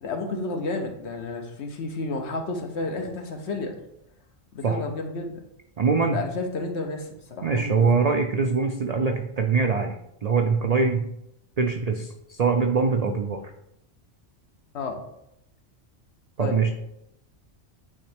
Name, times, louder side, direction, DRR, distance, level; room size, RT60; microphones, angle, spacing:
voice 1, 0.0-3.7 4.5-5.4 6.1-7.9 14.7-15.0 16.4-16.6, left 3 dB, 65° left, 3 dB, 1.1 m, -31 dB
voice 2, 5.8-6.2 7.4-10.0 10.2-11.0 11.6-13.4 16.4-16.7, right 4 dB, 65° right, 4 dB, 0.4 m, -23 dB
8.7 x 3.1 x 3.4 m, 0.79 s
omnidirectional pair, 1.2 m